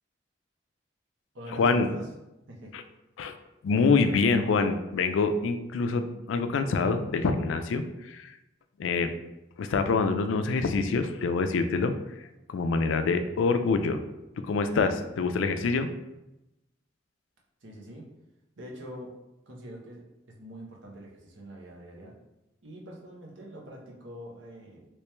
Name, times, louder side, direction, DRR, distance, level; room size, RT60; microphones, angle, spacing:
voice 1, 1.3-2.1 2.5-2.7 3.8-4.2 17.6-18.1 18.6-19.1 19.5-22.1 22.6-24.9, equal, 75° right, -2 dB, 0.9 m, -44 dB
voice 2, 3.6-8.3 8.8-9.1 9.6-12.0 12.5-14.0 14.5-15.9, left 4 dB, 85° left, 8 dB, 0.3 m, -25 dB
3.1 x 3.0 x 3.3 m, 0.93 s
head